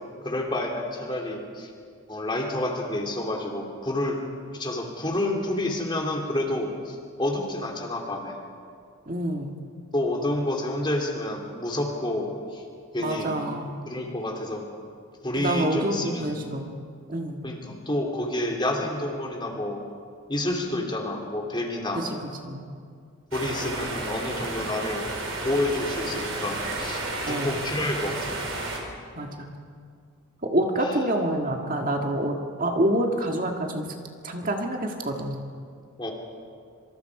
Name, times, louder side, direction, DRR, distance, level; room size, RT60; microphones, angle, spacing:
voice 1, 0.2-1.7 2.1-4.2 4.5-8.4 9.9-12.6 12.9-13.3 13.9-14.7 15.2-16.3 17.4-19.8 20.3-22.1 23.3-25.0 25.4-28.3 30.8-30.9 36.0-36.1, left 1 dB, 20° left, 1 dB, 3.1 m, -29 dB
voice 2, 9.1-9.5 13.0-13.8 15.3-16.7 17.1-17.4 22.0-22.1 22.4-22.6 27.3-27.6 29.2-29.5 30.4-33.9 34.2-35.5, right 1 dB, 40° right, 2 dB, 1.8 m, -27 dB
sound 1, 23.3-28.8, right 2 dB, 65° right, 4.2 m, -32 dB
26.5 x 24.5 x 4.9 m, 2.2 s
head